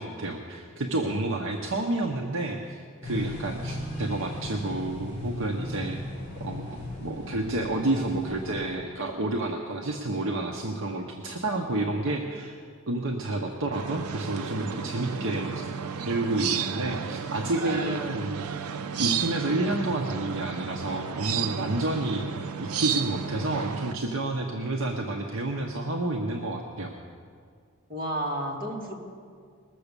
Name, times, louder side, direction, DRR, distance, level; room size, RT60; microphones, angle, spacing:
voice 1, 0.0-6.0 6.4-12.6 12.9-15.7 16.0-18.4 19.0-22.2 22.6-26.9, right 2 dB, 65° right, 1 dB, 0.9 m, -30 dB
sound 1, 3.0-8.8, left 1 dB, 30° left, 4.6 m, -36 dB
sound 2, 13.7-23.9, right 7 dB, 90° right, 0.6 m, -32 dB
voice 2, 14.6-15.4 17.6-18.0 27.9-29.0, equal, 40° right, -2 dB, 2.3 m, -34 dB
20.5 x 7.1 x 6.8 m, 2.1 s
head